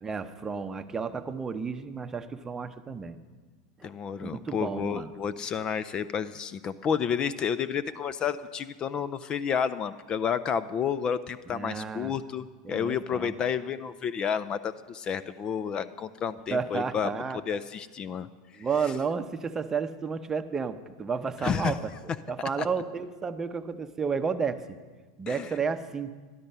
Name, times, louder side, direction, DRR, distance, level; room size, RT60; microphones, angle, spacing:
voice 1, 0.0-3.2 3.8-3.9 4.2-5.1 11.5-12.2 12.6-13.3 16.5-17.4 18.6-21.9 22.3-24.8 25.2-26.1, right 5 dB, 20° right, 10 dB, 0.7 m, -32 dB
voice 2, 3.8-17.1 17.5-18.3 21.4-21.8 25.3-25.5, left 7 dB, 35° left, 15 dB, 0.4 m, -30 dB
12.5 x 12.0 x 5.5 m, 1.4 s
hypercardioid pair, 110°, 3 cm